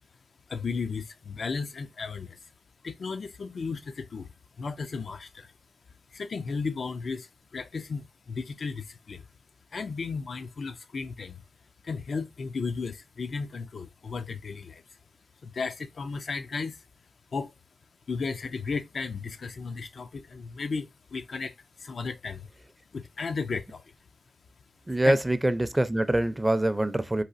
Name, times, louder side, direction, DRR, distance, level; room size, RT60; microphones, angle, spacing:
voice 1, 0.5-2.5 2.8-5.5 6.1-9.3 9.7-11.4 11.8-14.8 15.4-16.8 17.3-17.5 18.1-22.5 22.9-23.9 24.9-25.2, left 4 dB, 65° left, 0.3 m, -34 dB
voice 2, 24.9-27.2, right 1 dB, 15° right, 0.4 m, -24 dB
4.1 x 2.4 x 2.4 m
cardioid pair, 50°, 0 cm